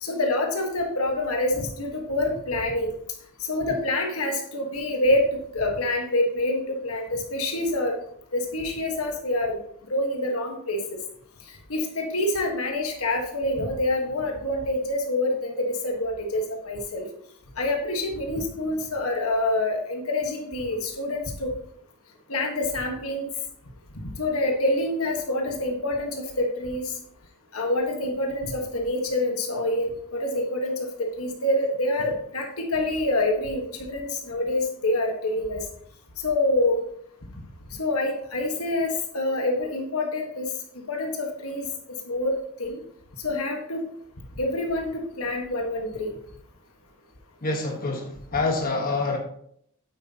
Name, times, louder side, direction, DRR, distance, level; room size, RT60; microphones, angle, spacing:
voice 1, 0.0-2.9 3.5-5.3 5.5-7.9 8.3-9.5 9.9-10.8 11.7-17.0 17.6-21.5 22.3-23.3 24.0-26.9 27.5-30.9 31.2-35.6 36.2-36.8 37.8-40.5 40.9-41.6 42.1-42.8 43.2-43.8 44.4-46.1, left 1 dB, 75° left, 2 dB, 1.5 m, -26 dB
voice 2, 47.4-49.2, left 3 dB, 40° left, 1 dB, 1.4 m, -26 dB
9.0 x 8.1 x 2.9 m, 0.67 s
head